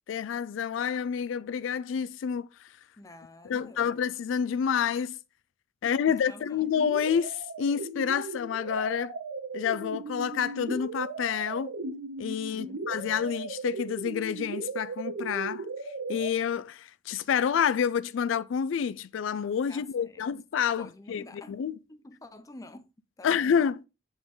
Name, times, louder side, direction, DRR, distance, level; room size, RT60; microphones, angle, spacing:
voice 1, 0.1-2.7 3.4-5.2 5.8-9.1 9.5-11.7 12.2-15.7 16.1-21.8 23.2-23.8, left 7 dB, 85° left, 0.3 m, -28 dB
voice 2, 3.0-4.0 5.8-6.7 12.5-13.3 19.7-20.3 20.8-21.6 21.9-22.9 23.2-23.5, left 1 dB, 20° left, 0.5 m, -49 dB
sound 1, 6.8-16.3, right 3 dB, 90° right, 0.9 m, -37 dB
7.0 x 3.8 x 3.8 m
head